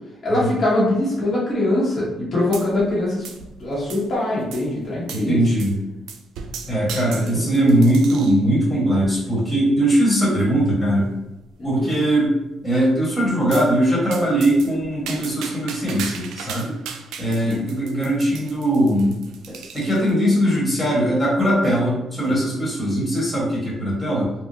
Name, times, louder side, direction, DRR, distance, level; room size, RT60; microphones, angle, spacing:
voice 1, 0.2-3.3 3.6-5.5 6.7-7.5 11.6-11.9 17.4-17.6, left 1 dB, 45° left, -7 dB, 1.0 m, -23 dB
sound 1, 2.5-3.0 3.2-4.1 4.5-4.7 5.1-5.3 5.6-5.8 6.1-8.4 9.0-9.4 10.0-10.1 10.4-10.5 10.9-11.0 11.4-11.9 13.5-13.7 14.1-20.1, right 6 dB, 85° right, 0.3 m, -37 dB
voice 2, 5.1-5.7 6.7-11.1 11.6-12.4 12.6-16.8 17.2-19.2 19.5-24.3, right 1 dB, 15° left, -5 dB, 1.5 m, -20 dB
3.5 x 2.2 x 2.7 m, 0.99 s
cardioid pair, 90°, 0 cm